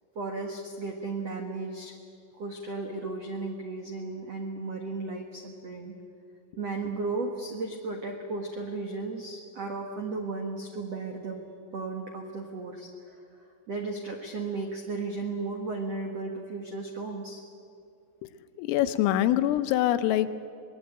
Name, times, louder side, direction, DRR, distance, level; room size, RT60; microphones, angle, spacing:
voice 1, 0.1-1.9 2.4-5.9 6.6-11.4 11.7-13.2 13.7-17.4, right 3 dB, 80° right, 2 dB, 1.4 m, -35 dB
voice 2, 18.6-20.3, left 13 dB, 85° left, 11 dB, 3.6 m, -24 dB
25.0 x 20.5 x 9.1 m, 2.5 s
omnidirectional pair, 5.8 m